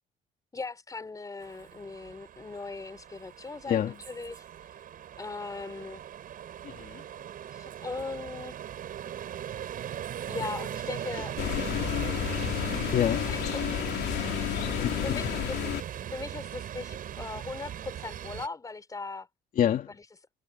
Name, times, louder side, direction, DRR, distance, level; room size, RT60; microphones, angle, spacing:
voice 1, 0.5-4.4 5.2-6.0 7.5-8.6 10.3-11.4 13.3-13.9 15.0-15.6 16.1-19.3 19.9-20.0, left 3 dB, 20° left, 4.3 m, -39 dB
sound 1, 1.4-18.5, right 10 dB, 55° right, 5.2 m, -39 dB
voice 2, 6.6-7.0 10.4-10.5 11.1-11.2 12.9-13.3 14.8-15.2 19.5-19.9, left 10 dB, 55° left, 2.5 m, -28 dB
sound 2, 11.4-15.8, left 15 dB, 85° left, 2.7 m, -31 dB
cardioid pair, 110°, 17 cm